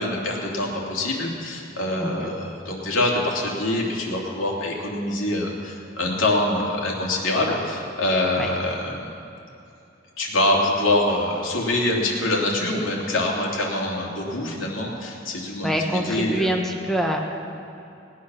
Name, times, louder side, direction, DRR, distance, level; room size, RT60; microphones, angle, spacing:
voice 1, 0.0-9.1 10.2-16.5, left 1 dB, 85° left, -2 dB, 2.7 m, -25 dB
voice 2, 2.0-2.3 8.4-8.5 15.6-17.2, equal, ahead, 1 dB, 1.1 m, -25 dB
19.0 x 8.4 x 6.3 m, 2.7 s
head